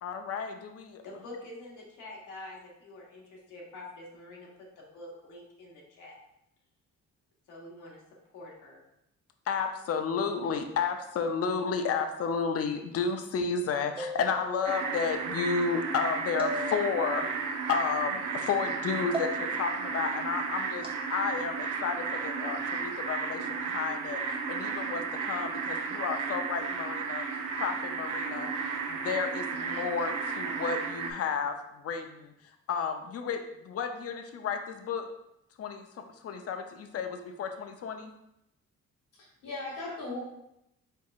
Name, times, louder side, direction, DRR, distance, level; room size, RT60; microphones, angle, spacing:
voice 1, 0.0-1.0 9.5-17.3 17.7-24.2 24.5-27.2 27.6-28.5 28.9-32.3 32.7-35.1 35.6-35.9 36.2-38.1, left 5 dB, 50° left, 6 dB, 0.6 m, -32 dB
voice 2, 1.0-3.2 3.5-4.5 4.8-6.2 7.5-8.0 8.3-8.8, left 2 dB, 85° left, -3 dB, 1.2 m, -46 dB
sound 1, 14.0-14.8 16.4-17.3 19.1-19.8 20.8-21.1, right 1 dB, 20° right, 0.7 m, -37 dB
sound 2, 14.6-31.1, right 5 dB, 80° right, 0.7 m, -34 dB
voice 3, 39.1-40.2, left 2 dB, 65° left, -5 dB, 1.3 m, -38 dB
4.5 x 3.8 x 2.4 m, 0.83 s
cardioid pair, 90°, 30 cm